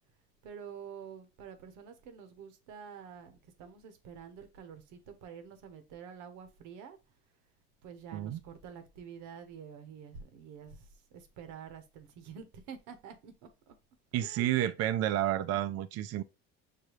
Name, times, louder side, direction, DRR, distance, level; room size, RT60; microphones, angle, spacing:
voice 1, 0.4-7.0 7.8-13.7 14.1-14.5, right 7 dB, 75° right, 1.0 m, -48 dB
voice 2, 14.1-16.2, right 13 dB, 55° right, 0.4 m, -30 dB
6.7 x 2.2 x 3.1 m
supercardioid pair, 95°, 30 cm